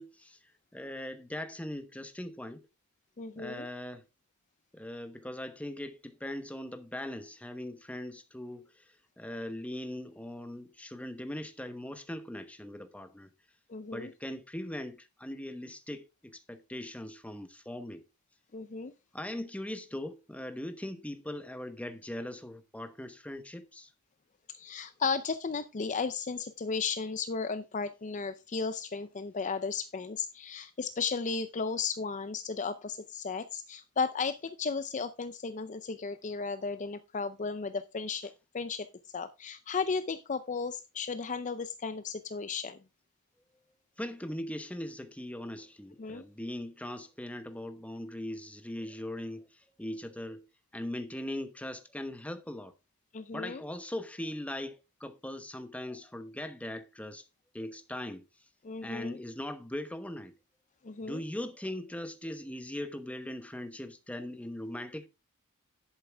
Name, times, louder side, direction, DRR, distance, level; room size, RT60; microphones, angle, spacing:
voice 1, 0.0-2.7 3.4-4.0 4.7-13.3 13.9-18.0 19.1-23.9 44.0-50.4 50.7-52.7 53.3-57.3 57.5-58.5 58.8-60.4 61.0-65.1, left 1 dB, 5° left, 1.0 m, -40 dB
voice 2, 3.2-3.7 13.7-14.1 18.5-18.9 24.5-42.8 46.0-46.2 53.1-53.6 58.6-59.2 60.8-61.2, left 5 dB, 35° left, 0.5 m, -35 dB
10.5 x 8.2 x 3.4 m
head